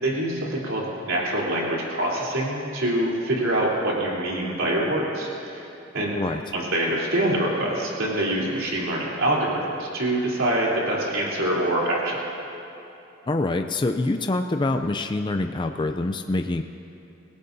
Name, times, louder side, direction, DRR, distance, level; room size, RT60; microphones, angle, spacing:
voice 1, 0.0-5.7 5.9-6.2 6.5-12.2, right 1 dB, 80° right, -5 dB, 3.6 m, -25 dB
voice 2, 13.3-16.6, left 2 dB, 25° left, 6 dB, 0.4 m, -25 dB
27.0 x 17.0 x 2.7 m, 2.8 s
head